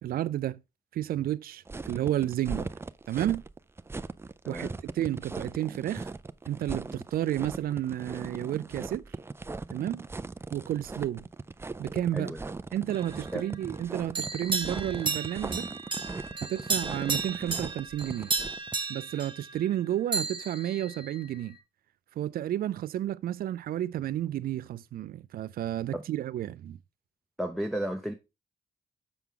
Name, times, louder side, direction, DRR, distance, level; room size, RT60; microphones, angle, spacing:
voice 1, 0.0-0.6 0.9-2.7 3.1-3.4 4.5-4.7 4.9-6.1 6.5-9.0 9.7-10.1 10.5-11.3 11.8-12.4 12.7-15.7 16.5-18.3 18.9-21.6 22.2-26.8, right 12 dB, 80° right, 0.4 m, -31 dB
sound 1, 1.7-18.7, right 3 dB, 15° right, 0.4 m, -39 dB
voice 2, 12.1-12.4 13.3-13.4 25.9-26.0 27.4-28.1, right 1 dB, ahead, 0.8 m, -33 dB
sound 2, 12.9-13.8 14.1-19.9 20.1-21.6, right 4 dB, 35° right, 1.0 m, -34 dB
6.9 x 5.9 x 3.8 m
cardioid pair, 95°, 15 cm